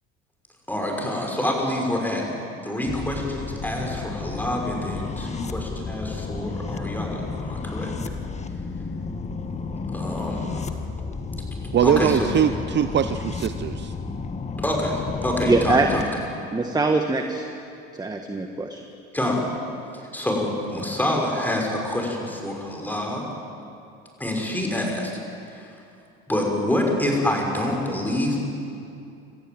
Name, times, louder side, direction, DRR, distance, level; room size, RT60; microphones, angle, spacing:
voice 1, 0.7-2.2 2.6-7.9 9.9-10.7 11.8-12.3 14.6-16.1 19.1-19.5 20.1-23.3 24.2-25.1 25.5-25.7 26.3-28.4, left 1 dB, 5° left, 0 dB, 6.1 m, -26 dB
sound 1, 2.9-16.0, left 4 dB, 25° left, 1.6 m, -32 dB
voice 2, 11.7-13.9, right 9 dB, 40° right, 11 dB, 0.8 m, -22 dB
voice 3, 15.5-15.9 16.5-17.5 17.9-18.8, right 3 dB, 15° right, 5 dB, 1.6 m, -22 dB
27.5 x 14.5 x 8.9 m, 2.6 s
supercardioid pair, 90°, 30 cm